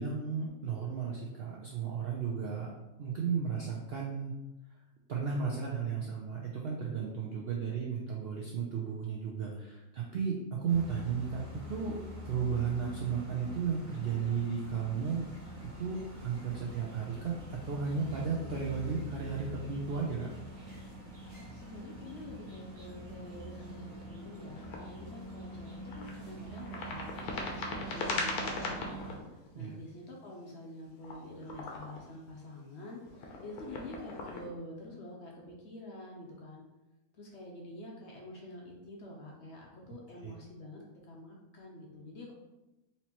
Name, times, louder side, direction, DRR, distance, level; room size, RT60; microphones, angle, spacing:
voice 1, 0.0-2.7 3.0-4.3 5.1-11.4 11.7-12.0 12.2-15.3 15.8-20.3 29.5-29.8 40.2-40.3, right 6 dB, 70° right, -3 dB, 0.5 m, -34 dB
sound 1, 10.7-29.2, right 1 dB, 25° right, 0.8 m, -46 dB
voice 2, 21.5-27.0 27.5-36.6 37.1-42.3, left 1 dB, 60° left, -1 dB, 0.8 m, -47 dB
sound 2, 24.6-24.9 25.9-26.2 26.5-29.5 30.6-32.0 32.9-34.5, left 3 dB, 80° left, 1.2 m, -39 dB
4.3 x 2.9 x 2.9 m, 1.0 s
omnidirectional pair, 1.6 m